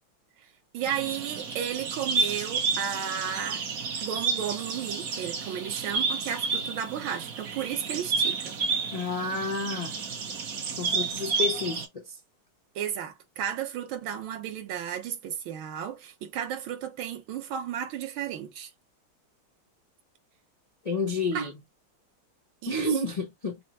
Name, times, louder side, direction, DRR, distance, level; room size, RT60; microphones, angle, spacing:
voice 1, 0.7-3.6 4.0-8.6 12.7-18.7 21.3-21.5 22.6-22.8, right 9 dB, 70° right, 1.6 m, -33 dB
sound 1, 0.8-11.8, right 4 dB, 55° right, 1.1 m, -31 dB
voice 2, 8.9-10.0 10.8-12.2 20.8-21.6 22.7-23.6, left 2 dB, 80° left, 0.3 m, -30 dB
5.5 x 2.1 x 2.8 m
omnidirectional pair, 2.4 m